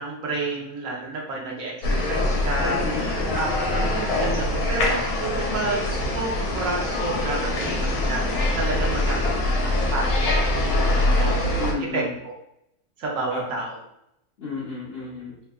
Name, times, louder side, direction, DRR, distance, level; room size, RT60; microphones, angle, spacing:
voice 1, 0.0-11.6 11.9-12.3 13.0-13.8, right 2 dB, 65° right, -2 dB, 1.0 m, -30 dB
sound 1, 1.8-11.7, left 1 dB, 75° left, 1.1 m, -24 dB
voice 2, 2.6-3.1 11.6-12.1 13.3-13.5 14.4-15.4, left 4 dB, 50° left, -7 dB, 0.8 m, -32 dB
3.4 x 2.6 x 2.3 m, 0.81 s
omnidirectional pair, 1.6 m